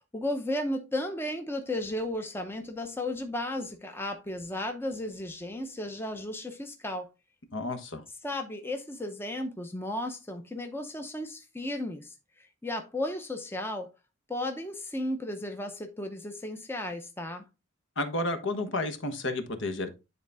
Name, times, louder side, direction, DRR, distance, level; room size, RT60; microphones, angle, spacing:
voice 1, 0.1-7.1 8.2-13.9 14.3-17.4, left 1 dB, 10° left, 0.7 m, -34 dB
voice 2, 7.5-8.0 18.0-19.9, left 2 dB, 60° left, 1.2 m, -31 dB
10.0 x 4.1 x 3.5 m
head